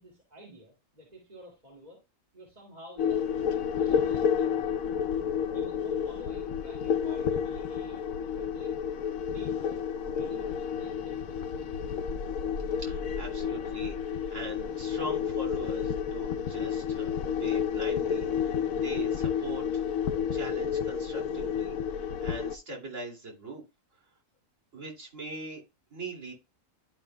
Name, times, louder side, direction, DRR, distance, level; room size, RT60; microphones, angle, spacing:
voice 1, 0.0-2.0 2.3-4.8 5.5-8.9 9.3-9.8 10.1-11.7 18.6-18.7, equal, 30° right, -2 dB, 2.3 m, -50 dB
sound 1, 3.0-22.6, left 7 dB, 80° left, 1.1 m, -30 dB
voice 2, 12.8-19.8 20.3-23.6 24.7-25.6 25.9-26.3, right 2 dB, 65° right, 0 dB, 3.0 m, -41 dB
11.5 x 5.4 x 2.2 m, 0.25 s
omnidirectional pair, 1.4 m